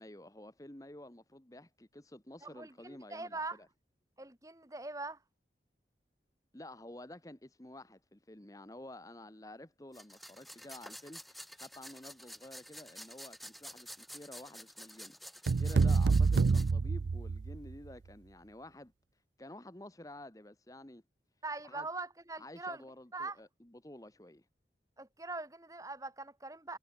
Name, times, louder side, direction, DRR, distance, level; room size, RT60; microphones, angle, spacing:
voice 1, 0.0-3.7 6.5-18.9 19.4-21.0 21.6-21.9 22.4-24.4, left 1 dB, 20° left, 1.2 m, -51 dB
voice 2, 2.4-3.6 4.2-5.2 21.4-22.8 23.1-23.4 25.0-26.8, right 3 dB, 20° right, 1.7 m, -42 dB
sound 1, 9.9-16.7, equal, ahead, 1.6 m, -50 dB
sound 2, 15.5-17.7, right 4 dB, 75° right, 0.4 m, -27 dB
head